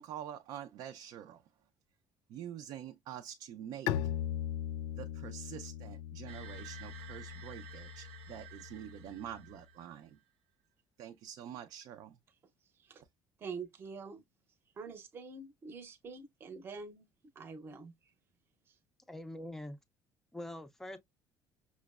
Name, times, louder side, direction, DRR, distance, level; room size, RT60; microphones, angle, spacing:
voice 1, 0.0-1.4 2.3-3.9 4.9-10.2 11.0-12.2, right 10 dB, 55° right, 0.4 m, -46 dB
Bowed string instrument, 3.9-9.4, left 10 dB, 80° left, 0.3 m, -39 dB
sound 1, 6.3-10.1, right 9 dB, 80° right, 0.7 m, -52 dB
voice 2, 13.4-14.2 14.8-17.1 17.4-17.9, right 4 dB, 30° right, 0.7 m, -45 dB
voice 3, 19.1-19.8 20.3-21.0, left 1 dB, 5° left, 0.4 m, -43 dB
6.0 x 2.0 x 2.3 m
cardioid pair, 170°, 8 cm